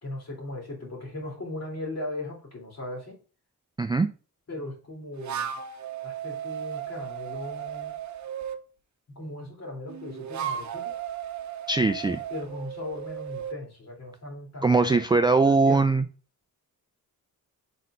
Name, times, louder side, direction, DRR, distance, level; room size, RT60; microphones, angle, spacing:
voice 1, 0.0-3.2 4.5-5.5 6.0-8.0 9.1-11.0 12.3-15.1 15.4-15.9, left 1 dB, 45° left, -1 dB, 3.5 m, -38 dB
voice 2, 3.8-4.1 11.7-12.2 14.6-16.1, right 3 dB, 10° right, 8 dB, 0.3 m, -21 dB
sound 1, 5.1-8.6 9.9-13.6, right 9 dB, 50° right, 0.8 m, -35 dB
5.4 x 4.2 x 5.0 m, 0.36 s
cardioid pair, 105°, 37 cm